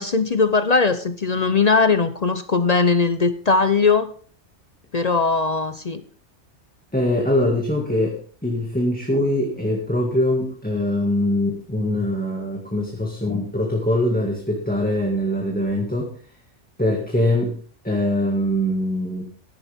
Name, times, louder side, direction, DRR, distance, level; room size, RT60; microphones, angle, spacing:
voice 1, 0.0-4.1 4.9-6.0, left 4 dB, 40° left, 11 dB, 0.6 m, -19 dB
voice 2, 6.9-16.1 16.8-17.6 17.8-19.3, left 1 dB, 5° left, 0 dB, 1.9 m, -22 dB
14.5 x 11.0 x 3.5 m, 0.43 s
omnidirectional pair, 1.2 m